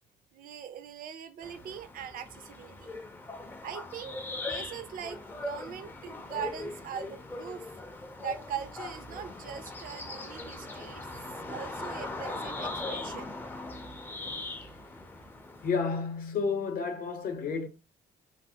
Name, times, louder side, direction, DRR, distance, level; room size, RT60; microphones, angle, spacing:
voice 1, 0.3-3.0 3.6-7.7 8.2-11.1 11.5-13.3, right 8 dB, 55° right, 0.4 m, -41 dB
sound 1, 1.4-15.8, left 2 dB, 10° left, 0.4 m, -40 dB
voice 2, 15.6-17.7, left 5 dB, 60° left, 0.7 m, -31 dB
3.2 x 2.0 x 2.7 m
cardioid pair, 110°, 17 cm